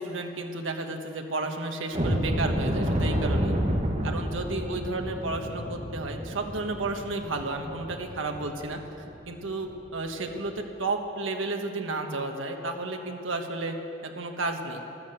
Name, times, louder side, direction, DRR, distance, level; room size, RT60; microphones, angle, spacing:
voice 1, 0.0-3.6 4.0-8.8 9.3-13.7 14.0-14.8, right 2 dB, 85° right, 4 dB, 1.4 m, -32 dB
sound 1, 1.9-8.7 9.0-9.2 9.6-9.8 10.2-10.4, equal, 35° right, 1.5 m, -30 dB
13.5 x 12.0 x 7.9 m, 3.0 s
head